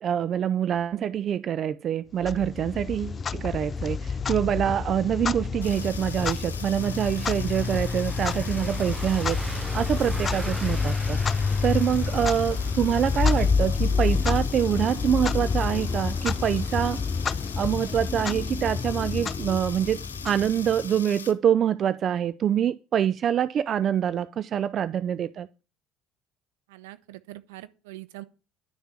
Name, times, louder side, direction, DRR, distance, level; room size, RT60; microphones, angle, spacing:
voice 1, 0.0-11.2 11.6-17.0 17.6-25.5, right 9 dB, 45° right, 0.5 m, -25 dB
Clock, 2.2-20.9, left 5 dB, 35° left, 0.6 m, -28 dB
sound 1, 5.6-21.3, left 6 dB, 85° left, 1.0 m, -41 dB
Car passing by / Engine, 6.7-13.5, right 4 dB, 15° right, 1.1 m, -40 dB
voice 2, 26.7-28.2, right 16 dB, 70° right, 1.0 m, -43 dB
11.0 x 6.7 x 8.8 m
figure-of-eight pair, 65°, 0 cm